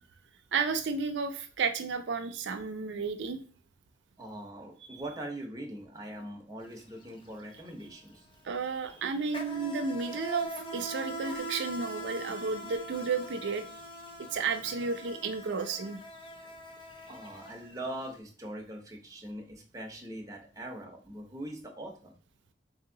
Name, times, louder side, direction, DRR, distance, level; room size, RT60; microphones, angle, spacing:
voice 1, 0.5-3.4 8.4-13.7 14.3-16.0, right 5 dB, 80° right, 6 dB, 0.4 m, -32 dB
voice 2, 4.2-8.3 17.1-22.1, right 1 dB, 20° right, 1 dB, 0.8 m, -42 dB
Insect, 6.6-6.8 7.1-18.1, equal, 30° left, 0.5 m, -42 dB
3.6 x 2.8 x 3.8 m, 0.39 s
head